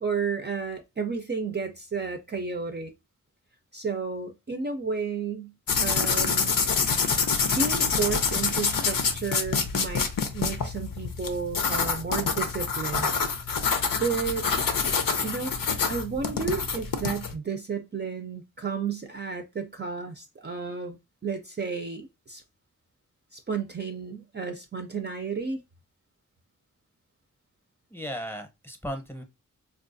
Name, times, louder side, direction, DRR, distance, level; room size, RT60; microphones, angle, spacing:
voice 1, 0.0-2.9 3.7-6.5 7.5-13.1 14.0-14.5 15.2-22.4 23.3-25.6, right 5 dB, 35° right, 0.4 m, -32 dB
sound 1, 5.7-17.3, left 5 dB, 90° left, 0.7 m, -26 dB
voice 2, 27.9-29.2, equal, 5° left, 0.7 m, -36 dB
4.5 x 2.3 x 2.5 m
wide cardioid pair, 85°, 32 cm